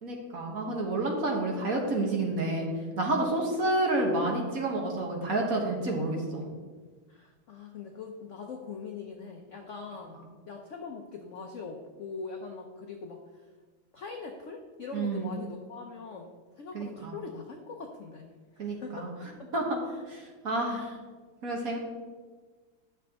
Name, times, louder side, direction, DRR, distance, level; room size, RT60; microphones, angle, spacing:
voice 1, 0.0-2.7 3.0-6.5 14.9-15.3 16.7-17.2 18.6-19.1 19.5-19.8 20.1-20.9 21.4-21.8, right 2 dB, 45° right, 0 dB, 1.6 m, -29 dB
voice 2, 7.1-13.2 13.9-16.3 16.6-19.1 19.4-19.5 20.6-21.0, left 4 dB, 65° left, 2 dB, 0.7 m, -42 dB
10.5 x 6.7 x 3.6 m, 1.4 s
omnidirectional pair, 2.2 m